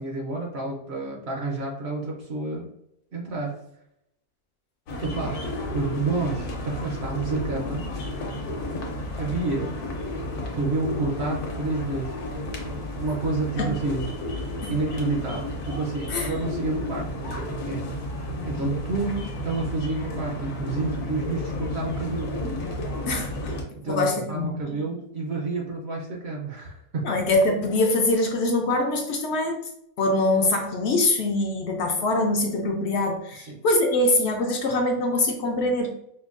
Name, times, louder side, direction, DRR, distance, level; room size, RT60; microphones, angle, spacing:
voice 1, 0.0-2.7 3.1-3.6 5.0-5.5 5.7-7.8 9.2-9.7 10.5-12.2 12.7-14.1 14.7-17.9 18.1-22.4 23.7-27.1 33.4-33.6, right 3 dB, 55° right, -1 dB, 0.8 m, -29 dB
sound 1, 4.9-23.6, left 1 dB, 85° left, 1.3 m, -32 dB
voice 2, 16.1-16.6 23.1-23.5 23.9-24.8 27.0-29.6 30.0-35.9, left 2 dB, 70° left, 2 dB, 0.6 m, -24 dB
5.1 x 2.2 x 2.4 m, 0.77 s
omnidirectional pair, 1.6 m